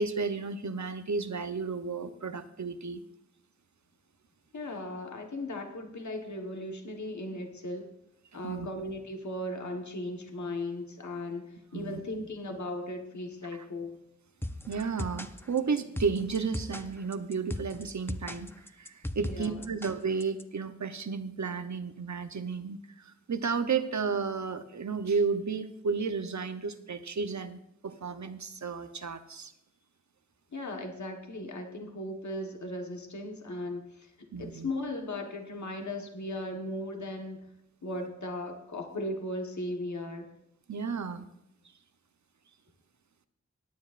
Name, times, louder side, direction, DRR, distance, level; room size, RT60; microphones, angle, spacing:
voice 1, 0.0-3.0 8.3-8.7 11.7-12.0 13.5-13.6 14.7-29.5 34.3-34.7 40.7-41.3, right 5 dB, 70° right, 10 dB, 0.8 m, -33 dB
voice 2, 4.5-7.9 8.3-14.0 19.2-19.6 30.5-34.1 34.4-37.4 37.8-40.3, left 1 dB, 70° left, 3 dB, 1.3 m, -37 dB
sound 1, 14.4-20.4, left 1 dB, 10° left, 0.6 m, -38 dB
17.5 x 9.5 x 2.5 m, 0.80 s
wide cardioid pair, 55°, 30 cm